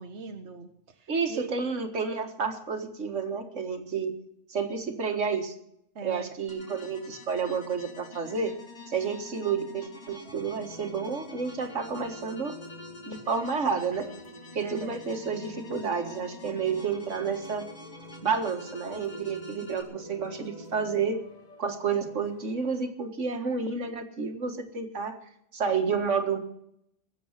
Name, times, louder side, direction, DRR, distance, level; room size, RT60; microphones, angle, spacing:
voice 1, 0.0-1.6 5.9-6.4 14.6-15.0, right 5 dB, 70° right, 4 dB, 1.4 m, -41 dB
voice 2, 1.1-4.1 4.5-5.5 6.0-8.5 8.9-12.6 13.1-14.1 14.5-17.7 18.2-21.2 21.6-25.1 25.5-26.4, right 5 dB, 85° right, 6 dB, 2.0 m, -30 dB
sound 1, 6.5-19.8, left 3 dB, 75° left, 2.9 m, -48 dB
sound 2, 10.2-22.9, equal, 35° left, 1.6 m, -48 dB
19.5 x 7.8 x 7.4 m, 0.75 s
omnidirectional pair, 1.2 m